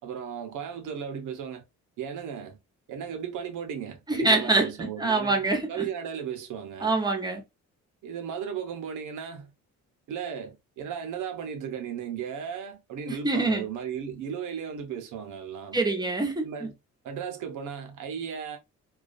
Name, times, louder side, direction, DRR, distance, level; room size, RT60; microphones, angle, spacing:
voice 1, 0.0-1.6 2.0-2.6 2.9-5.4 5.7-7.0 8.0-9.5 10.1-15.8 16.4-16.7 17.0-18.6, right 7 dB, 80° right, 0.7 m, -35 dB
voice 2, 4.1-5.9 6.8-7.4 13.1-13.6 15.7-16.7, right 3 dB, 15° right, 0.7 m, -25 dB
2.3 x 2.2 x 2.4 m
cardioid pair, 90°, 30 cm